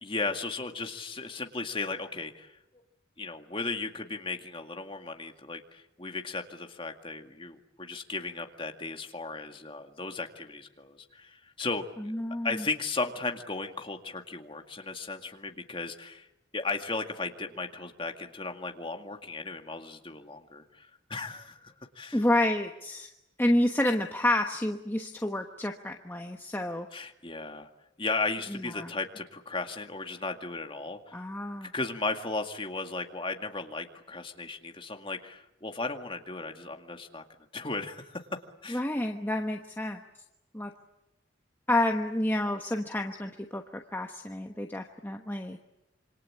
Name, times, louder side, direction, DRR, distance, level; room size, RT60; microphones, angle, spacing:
voice 1, 0.0-2.6 3.2-12.1 12.4-16.3 16.5-22.2 26.9-27.7 28.0-31.2 31.6-37.2 37.5-38.2 38.6-38.8, left 3 dB, 25° left, 4 dB, 2.1 m, -36 dB
voice 2, 12.0-12.7 22.1-23.1 23.4-26.9 28.5-28.9 31.1-31.7 38.7-40.0 40.5-40.7 41.7-45.6, left 1 dB, 10° left, 3 dB, 1.1 m, -29 dB
27.0 x 25.5 x 8.7 m, 0.88 s
head